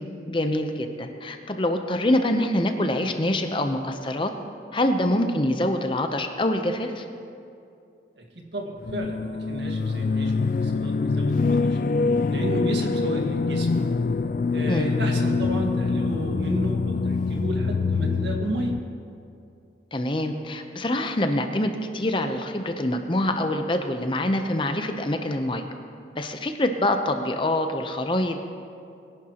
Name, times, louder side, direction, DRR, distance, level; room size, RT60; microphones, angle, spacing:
voice 1, 0.3-4.3 4.7-7.0 14.7-14.9 19.9-25.6 26.1-28.5, left 1 dB, 30° left, 6 dB, 0.7 m, -25 dB
voice 2, 8.2-11.8 12.3-13.7 14.5-18.8, right 1 dB, 85° right, 2 dB, 1.8 m, -32 dB
sound 1, 8.8-18.8, left 4 dB, 45° left, 0.3 m, -25 dB
21.5 x 11.0 x 3.0 m, 2.5 s
head